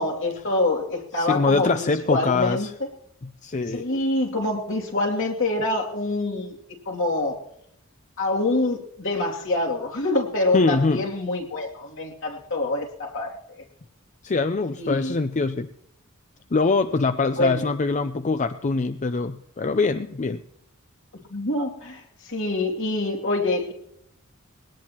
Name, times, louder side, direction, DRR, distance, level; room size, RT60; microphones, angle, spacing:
voice 1, 0.0-2.7 3.7-6.6 6.9-7.4 8.2-13.3 14.8-15.1 17.4-17.6 21.3-23.7, left 2 dB, 65° left, -1 dB, 2.7 m, -26 dB
voice 2, 1.1-2.7 3.4-3.9 10.5-11.0 14.2-15.7 16.5-20.4, left 3 dB, 35° left, 10 dB, 0.5 m, -23 dB
21.0 x 18.0 x 3.0 m, 0.79 s
head